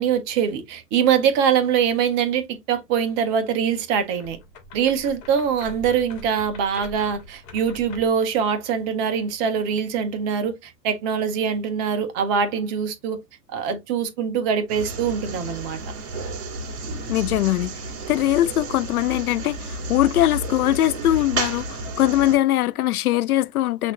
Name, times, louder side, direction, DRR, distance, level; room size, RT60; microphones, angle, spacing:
voice 1, 0.0-4.4 4.7-13.2 13.5-15.8, right 7 dB, 20° right, 0.4 m, -23 dB
sound 1, 4.1-8.2, left 1 dB, 35° left, 1.4 m, -42 dB
sound 2, 14.7-22.4, right 2 dB, 45° right, 2.0 m, -32 dB
voice 2, 17.1-17.7 18.1-23.9, left 14 dB, 65° left, 0.5 m, -21 dB
5.8 x 2.5 x 2.9 m
figure-of-eight pair, 105°, 48 cm